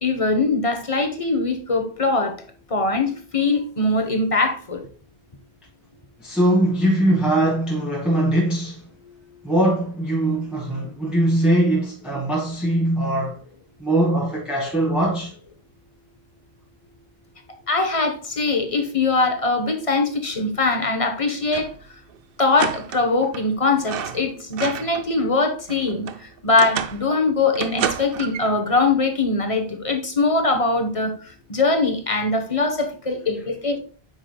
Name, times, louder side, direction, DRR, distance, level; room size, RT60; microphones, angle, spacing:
voice 1, 0.0-2.3 2.7-4.8 17.7-21.7 22.4-26.1 26.4-31.1 31.5-33.8, left 3 dB, 35° left, 1.1 m, -22 dB
voice 2, 6.2-8.8 9.4-13.4 13.8-15.3, right 1 dB, ahead, 1.4 m, -21 dB
sound 1, 21.4-21.8 22.1-22.2 22.6-23.5 23.8-25.1 25.4-27.1 27.6-28.6, right 8 dB, 65° right, 0.8 m, -30 dB
8.2 x 5.9 x 2.2 m
omnidirectional pair, 1.1 m